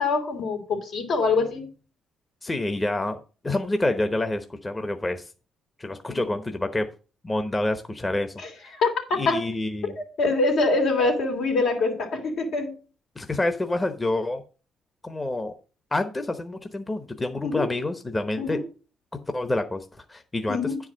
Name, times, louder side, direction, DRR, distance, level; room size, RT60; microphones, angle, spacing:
voice 1, 0.0-1.7 6.1-6.2 8.4-8.9 9.3-9.4 9.8-9.9 10.2-12.7 17.4-17.7 18.4-18.6 20.5-20.8, left 3 dB, 80° left, 2.9 m, -24 dB
voice 2, 2.4-3.2 3.4-5.3 5.8-6.8 7.2-8.3 8.6-8.7 9.1-9.9 13.2-14.4 15.0-15.5 15.9-18.6 19.3-20.6, left 2 dB, 20° left, 0.9 m, -27 dB
9.5 x 4.8 x 6.1 m
cardioid pair, 90°, 0 cm